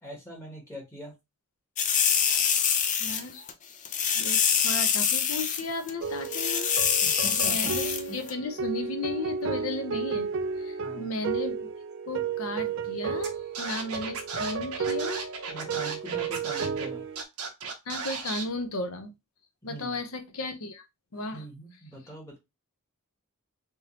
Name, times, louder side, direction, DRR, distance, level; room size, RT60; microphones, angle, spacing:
voice 1, 0.0-1.1 7.0-7.7 8.1-8.2 10.8-11.1 15.5-17.0 19.6-20.0 21.3-22.4, right 1 dB, 15° left, 0 dB, 1.2 m, -42 dB
sound 1, 1.8-3.2 3.5-3.6 3.9-5.6 5.9-6.0 6.3-8.0 8.3-8.4, left 7 dB, 35° left, 0.4 m, -25 dB
voice 2, 3.0-3.4 4.1-10.3 10.6-11.7 12.1-15.3 17.9-19.1 19.6-20.8 21.1-21.5, left 2 dB, 65° left, 8 dB, 0.7 m, -35 dB
sound 2, 6.0-17.2, right 5 dB, 55° right, 0.4 m, -33 dB
Scratching (performance technique), 13.2-13.3 13.5-16.9 17.1-18.4, right 5 dB, 80° right, 0.9 m, -35 dB
3.5 x 2.9 x 2.9 m, 0.23 s
head